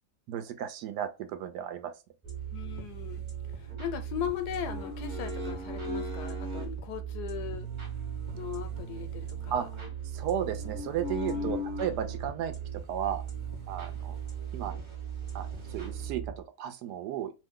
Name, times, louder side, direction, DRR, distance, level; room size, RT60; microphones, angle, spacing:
voice 1, 0.3-1.9 9.5-9.7 10.1-13.2 13.7-14.1 14.5-14.7 15.3-15.5 15.7-17.3, right 9 dB, 85° right, 1.2 m, -34 dB
sound 1, 2.2-16.4, right 9 dB, 25° right, 0.7 m, -39 dB
voice 2, 2.5-3.2 3.6-7.7 8.3-9.7 11.3-11.7, left 10 dB, 85° left, 1.2 m, -38 dB
sound 2, 2.6-3.8 4.3-6.7 7.3-12.3 13.2-14.4 14.7-14.8 15.2-16.1, left 2 dB, 55° right, 1.1 m, -41 dB
3.0 x 2.1 x 3.5 m
omnidirectional pair, 1.7 m